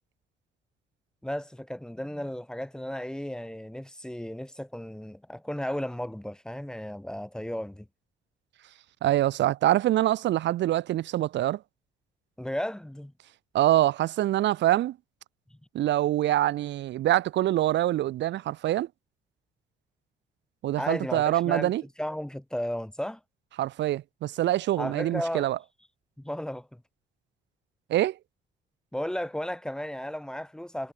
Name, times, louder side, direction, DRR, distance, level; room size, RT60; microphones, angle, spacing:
voice 1, 1.2-7.9 12.4-13.1 15.5-15.6 20.8-21.7 22.0-23.2 24.8-25.5 26.2-26.8 28.9-30.9, equal, 5° left, 1.6 m, -34 dB
voice 2, 9.0-11.6 13.5-15.0 15.7-18.9 20.6-21.8 23.6-25.6 27.9-28.2, right 14 dB, 70° right, 1.2 m, -25 dB
cardioid pair, 130°, 19 cm